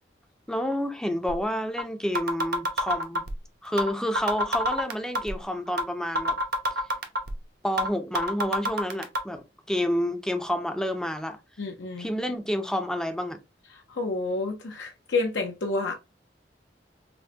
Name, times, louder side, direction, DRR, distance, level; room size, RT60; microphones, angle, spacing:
voice 1, 0.5-3.2 3.6-6.4 7.6-11.4 12.0-13.4, equal, 5° left, 0.5 m, -29 dB
sound 1, 1.3-1.4 1.8-1.9 2.1-3.3 3.8-3.9 4.1-5.3 5.8-5.9 6.1-7.3 7.8-7.9 8.1-9.2, equal, 60° right, 0.8 m, -25 dB
voice 2, 11.6-12.1 13.7-15.9, left 3 dB, 80° left, 0.8 m, -29 dB
5.3 x 2.2 x 2.7 m
head